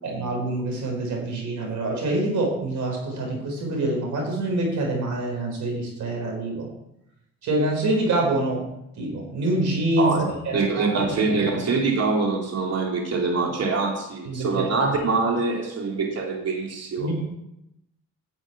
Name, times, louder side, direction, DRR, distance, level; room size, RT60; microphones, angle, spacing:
voice 1, 0.0-6.7 7.4-8.7 9.0-10.2 10.4-11.5 14.3-14.6 17.0-17.3, right 2 dB, 70° right, 1 dB, 4.5 m, -26 dB
voice 2, 10.5-17.1, right 4 dB, 55° right, 0 dB, 3.0 m, -24 dB
10.5 x 6.4 x 8.8 m, 0.83 s
cardioid pair, 90°, 30 cm